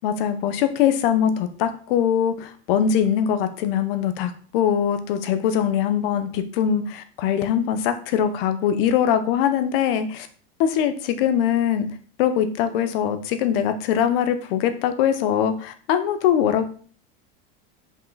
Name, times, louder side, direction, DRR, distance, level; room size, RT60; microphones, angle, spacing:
voice 1, 0.0-10.3 10.6-11.9 12.2-16.7, left 9 dB, 70° left, 9 dB, 1.0 m, -22 dB
5.5 x 5.3 x 4.0 m, 0.43 s
supercardioid pair, 145°, 29 cm